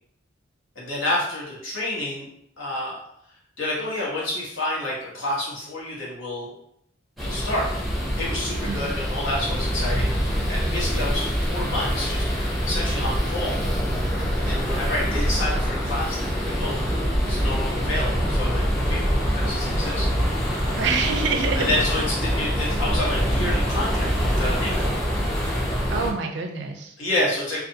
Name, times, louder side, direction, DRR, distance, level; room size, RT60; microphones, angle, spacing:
voice 1, 0.7-2.3 2.6-3.0 3.6-6.5 7.2-7.7 8.2-12.3 12.6-13.6 14.4-16.8 17.3-20.1 21.3-24.9 27.0-27.6, left 1 dB, 85° left, -6 dB, 1.1 m, -29 dB
sound 1, 7.2-26.1, equal, ahead, 0.5 m, -25 dB
voice 2, 20.7-21.7 25.9-27.0, right 4 dB, 65° right, 4 dB, 0.4 m, -26 dB
2.5 x 2.4 x 2.7 m, 0.74 s
head